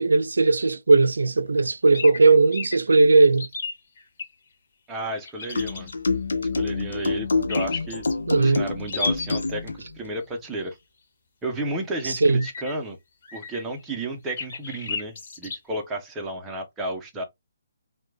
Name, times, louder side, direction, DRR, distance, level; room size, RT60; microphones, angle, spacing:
voice 1, 0.0-3.5 8.3-8.6 12.0-12.5, right 3 dB, 80° right, 0.3 m, -18 dB
sound 1, 1.9-2.2 2.5-2.8 3.3-4.3 5.2-5.9 7.5-8.1 8.9-9.5 12.3-12.7 13.2-13.8 14.4-15.6, left 4 dB, 50° left, 1.1 m, -32 dB
voice 2, 4.9-5.9 6.6-8.1 8.4-10.8 11.4-13.0 13.3-17.2, right 2 dB, 10° right, 0.5 m, -32 dB
sound 2, 5.5-9.8, left 3 dB, 85° left, 0.5 m, -26 dB
2.2 x 2.1 x 3.1 m
hypercardioid pair, 150°, 0 cm